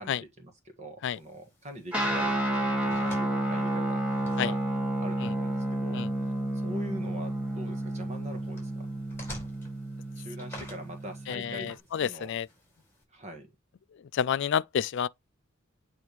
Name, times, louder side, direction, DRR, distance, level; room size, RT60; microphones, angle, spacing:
voice 1, 0.0-4.0 4.4-4.6 5.0-6.3 6.6-8.9 10.1-12.3 13.1-13.5, equal, 35° right, 1.5 m, -43 dB
sound 1, 1.1-13.0, left 1 dB, 10° left, 4.4 m, -51 dB
Guitar, 1.9-11.7, right 1 dB, 5° right, 1.7 m, -31 dB
voice 2, 11.3-12.5 14.1-15.1, left 8 dB, 60° left, 0.3 m, -29 dB
8.9 x 3.5 x 3.1 m
head